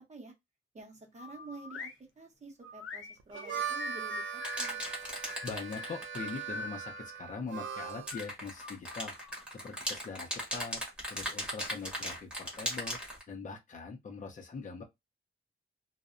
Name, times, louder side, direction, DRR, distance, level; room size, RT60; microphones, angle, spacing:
voice 1, 0.7-1.9 2.2-4.8, right 3 dB, 35° right, 0.7 m, -49 dB
sound 1, 1.2-2.0 2.6-4.7 5.2-7.1 7.6-9.4, left 5 dB, 90° left, 0.6 m, -44 dB
Harmonica, 3.2-8.1, right 8 dB, 65° right, 0.4 m, -40 dB
sound 2, 4.4-6.4 7.9-13.2, equal, 5° right, 0.9 m, -37 dB
voice 2, 5.4-9.1 9.5-10.8 11.1-13.0 13.3-14.8, left 4 dB, 35° left, 0.5 m, -42 dB
2.6 x 2.0 x 2.4 m
wide cardioid pair, 175°, 21 cm